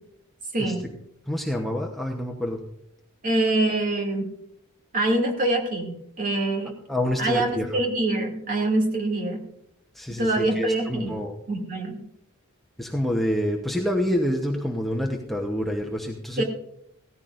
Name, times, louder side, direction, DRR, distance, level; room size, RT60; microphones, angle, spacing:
voice 1, 0.5-0.9 3.2-4.3 4.9-6.7 7.2-9.5 10.2-11.1 11.5-12.0 16.4-16.5, right 2 dB, 40° right, 1 dB, 2.6 m, -25 dB
voice 2, 1.3-2.6 6.9-7.8 9.9-11.4 12.8-16.4, left 1 dB, ahead, 0 dB, 1.0 m, -27 dB
17.5 x 14.5 x 2.6 m, 0.75 s
head